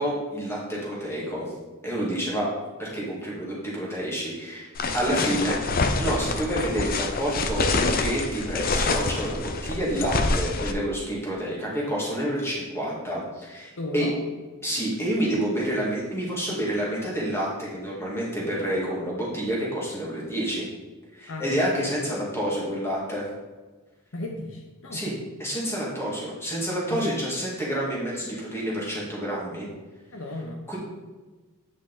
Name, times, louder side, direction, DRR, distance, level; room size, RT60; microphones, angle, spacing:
voice 1, 0.0-1.5 1.8-2.5 2.8-4.7 4.9-5.6 6.0-14.1 14.6-20.6 21.1-23.2 24.9-29.7 30.7-30.8, right 1 dB, 10° left, -5 dB, 2.2 m, -28 dB
sound 1, 4.8-10.7, left 3 dB, 40° left, 0.6 m, -26 dB
voice 2, 4.9-5.3 13.8-14.2 21.3-21.6 24.1-25.0 26.9-27.1 30.1-30.6, left 2 dB, 60° left, 2 dB, 0.8 m, -34 dB
9.0 x 5.1 x 4.1 m, 1.3 s
head